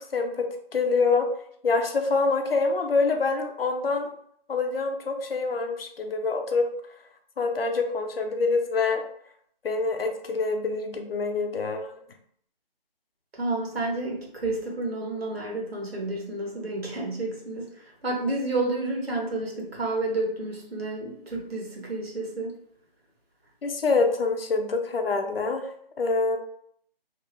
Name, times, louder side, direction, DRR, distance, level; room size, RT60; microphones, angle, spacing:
voice 1, 0.1-1.3 1.6-4.1 4.5-6.7 7.4-9.0 9.6-11.9 23.6-25.6 26.0-26.4, left 4 dB, 70° left, 4 dB, 0.6 m, -25 dB
voice 2, 13.3-22.5, right 2 dB, 85° right, -1 dB, 1.0 m, -30 dB
2.8 x 2.0 x 2.7 m, 0.66 s
figure-of-eight pair, 155°, 30 cm